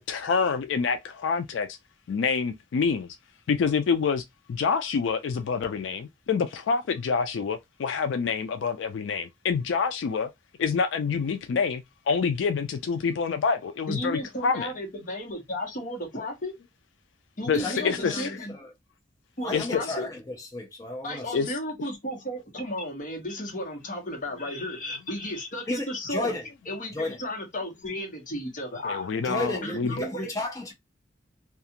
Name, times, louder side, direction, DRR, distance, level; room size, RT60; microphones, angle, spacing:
voice 1, 0.0-1.7 2.1-3.2 3.5-4.2 4.5-10.3 10.6-14.7 17.5-18.3 19.5-19.8 21.3-21.5 28.8-29.9, left 5 dB, 80° left, 0.3 m, -27 dB
voice 2, 13.9-16.5 17.4-18.5 19.4-20.1 21.0-26.4 26.7-29.2 29.6-30.3, equal, 45° left, 1.1 m, -34 dB
voice 3, 17.6-18.7 19.4-21.2 25.7-26.5 26.9-27.2 29.2-30.7, left 2 dB, 20° left, 0.7 m, -33 dB
2.4 x 2.3 x 2.8 m
head